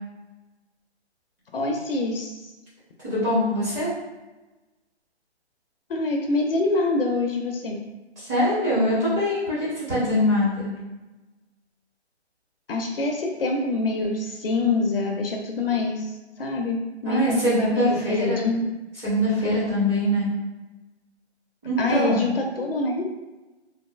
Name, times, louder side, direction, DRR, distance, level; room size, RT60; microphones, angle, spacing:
voice 1, 1.5-2.5 5.9-7.8 12.7-16.1 16.4-18.6 21.8-23.0, left 3 dB, 55° left, 2 dB, 0.4 m, -25 dB
voice 2, 3.0-3.9 8.2-10.7 17.0-18.5 19.0-20.3 21.6-22.3, left 1 dB, 15° right, -10 dB, 0.7 m, -23 dB
3.1 x 2.5 x 2.3 m, 1.1 s
hypercardioid pair, 150°, 34 cm